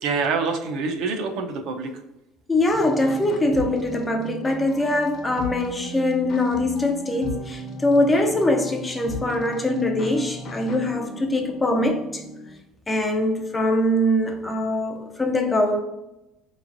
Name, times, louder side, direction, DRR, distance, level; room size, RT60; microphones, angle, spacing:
voice 1, 0.0-1.9, right 4 dB, 60° right, 0.5 m, -26 dB
voice 2, 2.5-12.2 12.9-15.8, left 1 dB, 10° left, 0.3 m, -22 dB
sound 1, 2.7-12.6, left 1 dB, 45° left, 0.7 m, -37 dB
4.3 x 3.2 x 2.5 m
cardioid pair, 160°, 0 cm